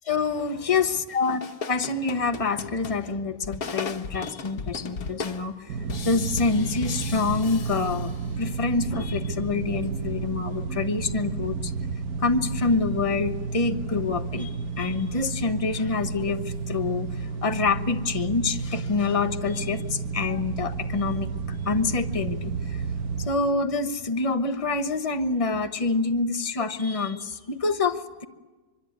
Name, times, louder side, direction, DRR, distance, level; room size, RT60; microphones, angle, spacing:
voice 1, 0.0-1.4 1.7-5.8 6.0-11.7 12.2-22.8 23.2-28.2, left 4 dB, 25° left, 7 dB, 1.1 m, -27 dB
sound 1, 1.1-8.5, left 4 dB, 70° left, 1.7 m, -37 dB
sound 2, 5.7-23.3, right 5 dB, 70° right, 1.5 m, -31 dB
24.5 x 22.5 x 9.5 m, 1.2 s
omnidirectional pair, 1.6 m